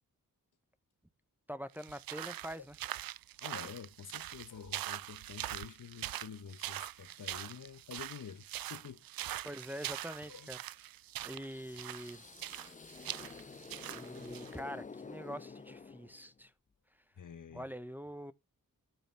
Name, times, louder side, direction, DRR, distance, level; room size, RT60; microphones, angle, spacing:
voice 1, 1.5-2.8 9.4-10.6 11.2-12.2 12.8-13.0 13.4-16.5 17.5-18.3, equal, 5° right, 1.0 m, -45 dB
sound 1, 1.7-14.5, right 14 dB, 80° right, 0.5 m, -43 dB
voice 2, 3.4-9.0 10.3-10.5 11.2-11.4 17.2-17.6, left 7 dB, 60° left, 1.1 m, -48 dB
sound 2, 11.4-16.5, left 4 dB, 25° left, 0.5 m, -50 dB
13.0 x 5.2 x 3.4 m
cardioid pair, 65°, 35 cm